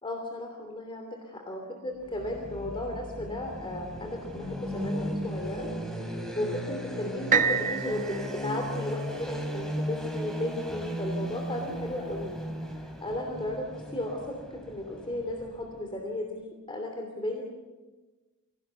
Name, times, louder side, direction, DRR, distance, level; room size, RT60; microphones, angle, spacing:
voice 1, 0.0-5.7 6.4-12.4 12.8-17.4, left 1 dB, 25° left, 2 dB, 3.0 m, -35 dB
sound 1, 2.0-15.9, equal, ahead, 3.3 m, -36 dB
sound 2, 7.3-11.2 11.8-11.9, right 6 dB, 35° right, 1.2 m, -31 dB
26.0 x 17.5 x 8.2 m, 1.2 s
head